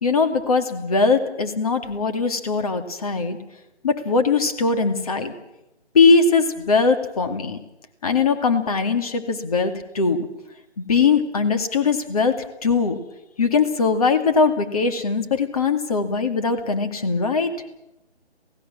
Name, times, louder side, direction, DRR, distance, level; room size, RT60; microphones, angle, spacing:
voice 1, 0.0-3.4 3.8-5.3 5.9-7.6 8.0-10.3 10.8-13.0 13.4-17.5, left 4 dB, 30° left, 7 dB, 2.4 m, -20 dB
27.5 x 17.5 x 7.4 m, 0.90 s
figure-of-eight pair, 155°, 34 cm